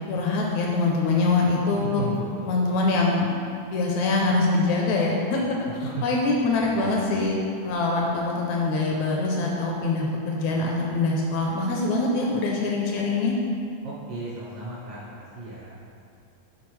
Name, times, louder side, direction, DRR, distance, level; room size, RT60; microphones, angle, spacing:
voice 1, 0.1-2.0 2.5-3.4 3.7-5.6 6.0-13.3, left 3 dB, 80° left, -1 dB, 1.8 m, -24 dB
voice 2, 1.7-2.5 6.0-6.1 6.6-7.2 13.8-15.7, right 3 dB, 65° right, -8 dB, 1.5 m, -35 dB
7.8 x 3.9 x 3.1 m, 2.4 s
omnidirectional pair, 3.5 m